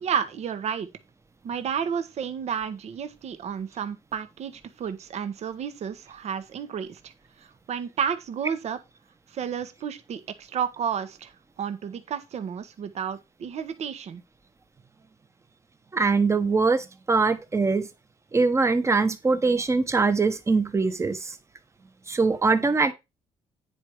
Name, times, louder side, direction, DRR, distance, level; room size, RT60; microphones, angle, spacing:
voice 1, 0.0-0.9 1.4-7.1 7.4-8.8 9.3-11.3 11.6-14.2, right 7 dB, 55° right, 1.4 m, -31 dB
voice 2, 15.9-17.9 18.3-21.3 22.1-22.9, right 4 dB, 20° right, 1.2 m, -22 dB
9.6 x 4.6 x 4.9 m
cardioid pair, 130°, 13 cm